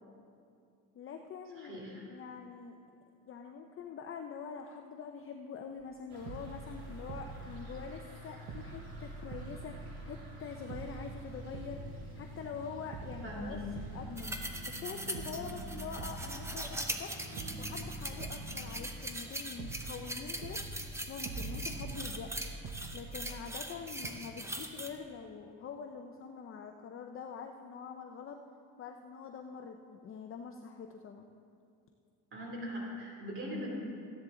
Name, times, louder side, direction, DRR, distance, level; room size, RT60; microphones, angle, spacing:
voice 1, 0.9-1.8 2.1-2.8 3.3-13.6 13.9-14.4 14.7-17.1 17.6-20.6 21.1-22.3 22.9-28.4 28.8-31.3, left 6 dB, 35° left, 4 dB, 0.6 m, -45 dB
voice 2, 1.6-2.1 13.2-13.6 32.3-33.8, equal, 35° right, -2 dB, 2.6 m, -40 dB
sound 1, 5.8-5.9 6.3-8.2 8.5-10.4 10.7-12.6 12.9-14.8 15.1-17.0 17.4-19.3 19.6-23.7 24.0-24.1, right 3 dB, 55° right, 1.1 m, -45 dB
sound 2, 6.1-24.6, right 2 dB, 75° right, 2.9 m, -50 dB
sound 3, 14.2-24.9, right 1 dB, 5° right, 0.7 m, -41 dB
14.5 x 10.0 x 3.8 m, 2.4 s
cardioid pair, 130°, 37 cm